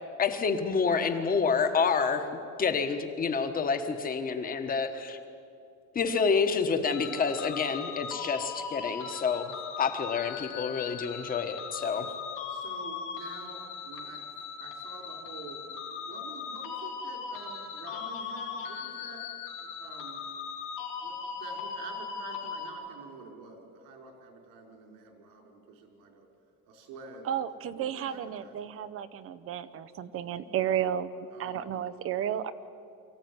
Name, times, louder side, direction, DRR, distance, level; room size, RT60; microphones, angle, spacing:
voice 1, 0.2-2.3 2.6-5.2 5.9-12.0, left 5 dB, 25° left, 7 dB, 1.4 m, -28 dB
voice 2, 6.7-7.1 27.2-31.1 31.4-32.5, right 10 dB, 40° right, 12 dB, 0.8 m, -33 dB
sound 1, 6.8-22.7, left 6 dB, 80° left, 3.2 m, -39 dB
voice 3, 12.5-14.2 14.6-15.6 15.9-19.2 19.6-20.2 21.0-26.3 26.7-27.3 27.7-28.5 31.3-31.7, right 4 dB, 80° right, 3 dB, 5.0 m, -48 dB
24.0 x 15.5 x 9.6 m, 2.5 s
cardioid pair, 165°, 33 cm